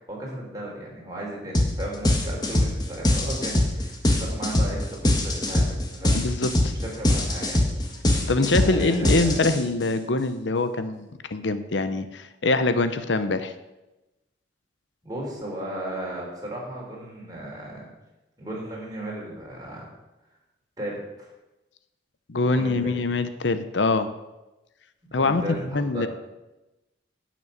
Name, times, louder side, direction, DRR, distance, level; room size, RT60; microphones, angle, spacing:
voice 1, 0.0-6.2 6.7-7.7 8.5-9.5 15.0-17.9 18.4-19.9 20.8-21.3 22.4-23.0 25.0-26.1, right 1 dB, 20° right, -3 dB, 3.8 m, -35 dB
sound 1, 1.5-1.7 2.0-9.8, left 1 dB, 20° left, 1.5 m, -22 dB
voice 2, 6.1-6.7 8.3-13.5 22.3-24.1 25.1-25.4 25.7-26.1, left 3 dB, 75° left, 11 dB, 0.8 m, -24 dB
10.5 x 6.2 x 8.5 m, 1.0 s
head